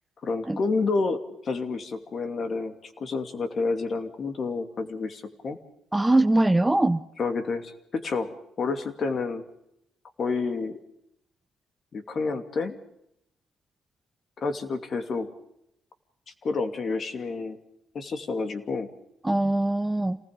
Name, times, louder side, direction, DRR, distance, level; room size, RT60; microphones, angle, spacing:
voice 1, 0.2-5.6 7.2-9.4 10.2-10.8 11.9-12.8 14.4-15.3 16.4-17.6 17.9-18.9, left 4 dB, 50° left, 9 dB, 2.6 m, -29 dB
voice 2, 5.9-7.0 19.2-20.2, right 2 dB, 10° right, 12 dB, 0.8 m, -22 dB
28.0 x 19.0 x 5.3 m, 0.78 s
cardioid pair, 90°, 0 cm